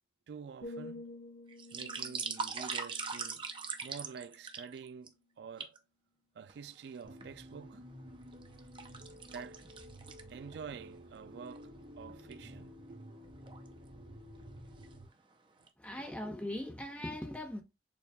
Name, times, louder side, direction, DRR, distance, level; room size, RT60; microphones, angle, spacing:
voice 1, 0.3-1.0 1.7-3.4 3.8-5.8 6.3-7.8 9.2-9.7 10.3-13.0, right 6 dB, 75° right, 0.3 m, -48 dB
sound 1, 0.6-4.6 4.9-5.3, left 2 dB, 70° left, 1.4 m, -50 dB
sound 2, 1.5-5.1 5.6-5.8 6.5-7.3 7.8-10.6 11.0-11.1 11.5-11.6 12.1-12.3 13.2-13.7 14.2-14.4 14.7-15.3 15.7-15.8, right 5 dB, 30° right, 0.6 m, -41 dB
sound 3, 7.0-15.0, equal, 55° right, 1.4 m, -52 dB
voice 2, 15.8-17.6, left 1 dB, 10° left, 0.8 m, -40 dB
6.8 x 2.3 x 3.4 m
head